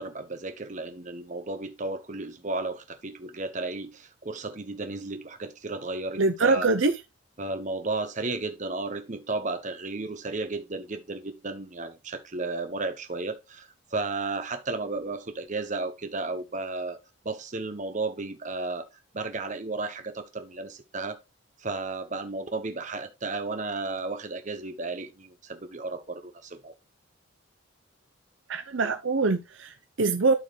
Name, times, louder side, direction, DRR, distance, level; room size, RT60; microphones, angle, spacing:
voice 1, 0.0-6.7 7.4-17.0 17.2-18.9 19.1-21.2 21.6-26.7, right 3 dB, 35° right, 1.0 m, -33 dB
voice 2, 6.2-6.9 28.5-30.3, right 3 dB, 65° right, 0.7 m, -24 dB
12.0 x 4.5 x 3.2 m
head